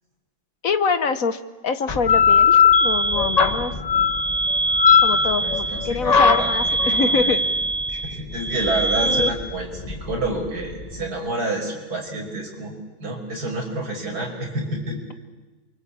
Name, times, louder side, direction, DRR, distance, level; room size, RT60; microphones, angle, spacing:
voice 1, 0.6-3.8 5.0-7.4 9.0-9.3, left 5 dB, 50° left, 11 dB, 1.3 m, -25 dB
sound 1, 1.9-11.1, left 7 dB, 30° left, 0.9 m, -20 dB
sound 2, 2.7-9.3, right 2 dB, 10° left, 1.2 m, -24 dB
voice 2, 5.1-7.5 7.9-12.7 13.0-15.1, right 2 dB, 50° right, 1 dB, 6.2 m, -29 dB
28.5 x 24.5 x 8.6 m, 1.2 s
omnidirectional pair, 2.2 m